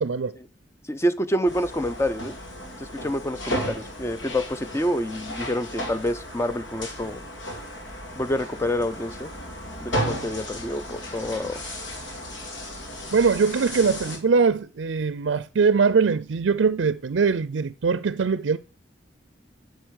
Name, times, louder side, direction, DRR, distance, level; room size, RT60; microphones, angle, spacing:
voice 1, 0.0-0.3 13.1-18.6, right 5 dB, 75° right, 0.5 m, -22 dB
voice 2, 0.9-2.3 2.8-7.3 8.2-9.3 9.8-11.6, equal, 15° left, 0.6 m, -27 dB
sound 1, 1.5-14.2, equal, 85° left, 2.5 m, -34 dB
8.0 x 6.6 x 6.3 m
head